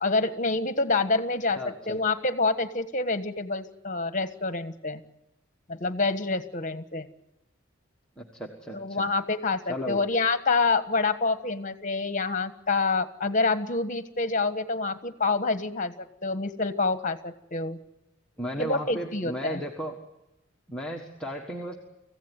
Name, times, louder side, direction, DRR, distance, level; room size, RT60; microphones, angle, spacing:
voice 1, 0.0-5.0 5.7-7.1 8.7-15.9 16.2-17.8 18.6-19.6, left 3 dB, 40° left, 10 dB, 1.4 m, -27 dB
voice 2, 1.6-2.0 8.2-9.1 9.7-10.0 18.4-20.0 20.7-21.8, equal, 5° left, -2 dB, 1.5 m, -35 dB
25.5 x 16.0 x 9.3 m, 0.93 s
head